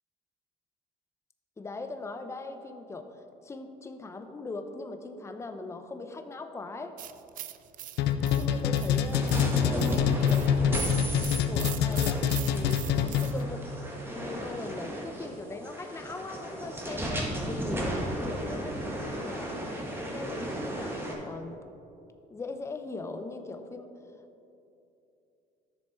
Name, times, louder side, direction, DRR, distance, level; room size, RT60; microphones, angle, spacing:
voice 1, 1.6-6.9 8.4-9.3 9.6-18.8 19.2-19.6 20.1-21.5 22.3-23.9, left 3 dB, 15° left, 7 dB, 0.6 m, -40 dB
sound 1, 7.0-13.4, right 12 dB, 55° right, 0.4 m, -43 dB
sound 2, 8.0-13.5, left 8 dB, 80° left, 0.6 m, -26 dB
sound 3, 9.1-21.1, right 1 dB, 15° right, 1.8 m, -34 dB
11.0 x 6.6 x 4.4 m, 2.8 s
cardioid pair, 110°, 17 cm